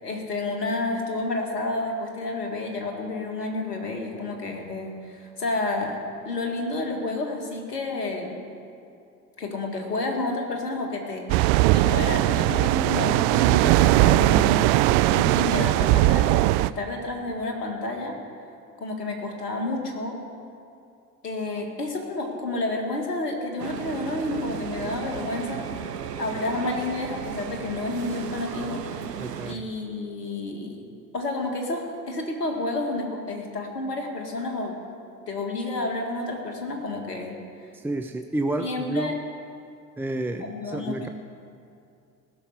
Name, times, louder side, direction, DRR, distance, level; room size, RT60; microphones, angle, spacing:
voice 1, 0.0-6.0 6.3-8.4 9.4-14.8 15.1-16.3 16.6-18.2 18.8-20.2 21.2-25.7 26.2-28.8 29.5-30.8 31.1-34.7 35.3-37.4 38.6-39.2 40.4-41.1, left 2 dB, 80° left, 1 dB, 2.1 m, -30 dB
sound 1, 11.3-16.7, right 17 dB, 50° right, 0.5 m, -19 dB
sound 2, 23.6-29.6, right 8 dB, 90° right, 0.7 m, -35 dB
voice 2, 29.2-29.7 37.7-39.2 40.0-41.1, right 2 dB, 5° right, 5 dB, 0.5 m, -30 dB
17.5 x 7.1 x 9.7 m, 2.5 s
figure-of-eight pair, 65°, 47 cm